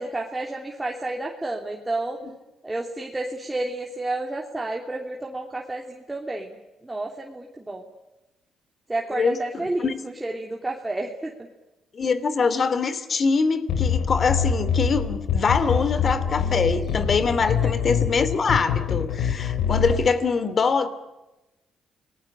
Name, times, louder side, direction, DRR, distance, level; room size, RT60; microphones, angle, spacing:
voice 1, 0.0-2.2 2.6-6.6 6.8-7.8 8.9-11.5 17.6-17.7, right 2 dB, 15° right, 0 dB, 3.1 m, -30 dB
voice 2, 9.1-10.0 11.9-20.9, left 5 dB, 45° left, 13 dB, 2.8 m, -24 dB
sound 1, 13.7-20.1, left 7 dB, 80° left, 3.8 m, -25 dB
29.5 x 20.0 x 8.9 m, 1.0 s
cardioid pair, 90°, 0 cm